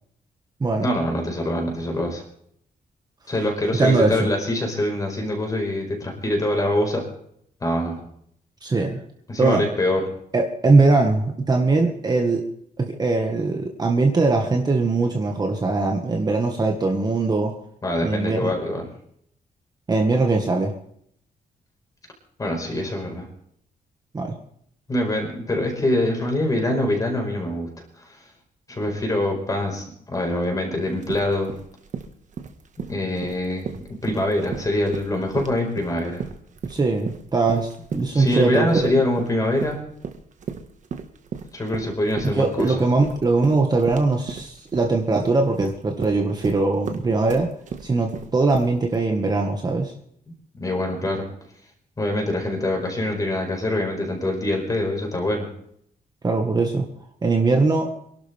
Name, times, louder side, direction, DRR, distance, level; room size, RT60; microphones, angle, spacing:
voice 1, 0.8-2.2 3.3-7.0 7.6-8.0 9.3-10.0 17.8-18.9 22.4-23.3 24.9-27.7 28.7-31.5 32.8-36.2 38.1-39.8 41.5-42.8 50.5-51.3 52.0-55.5, left 1 dB, 20° left, 1 dB, 5.0 m, -24 dB
voice 2, 3.7-4.3 8.6-9.0 9.4-9.6 10.3-12.4 12.8-17.5 18.0-18.5 19.9-20.7 24.1-24.4 36.7-38.9 42.3-47.5 47.8-49.9 56.2-56.9 57.2-57.9, right 3 dB, 25° right, 2 dB, 1.7 m, -21 dB
sound 1, 30.8-49.0, right 6 dB, 50° right, 1.7 m, -35 dB
27.0 x 12.0 x 3.6 m, 0.67 s
wide cardioid pair, 170°, 16 cm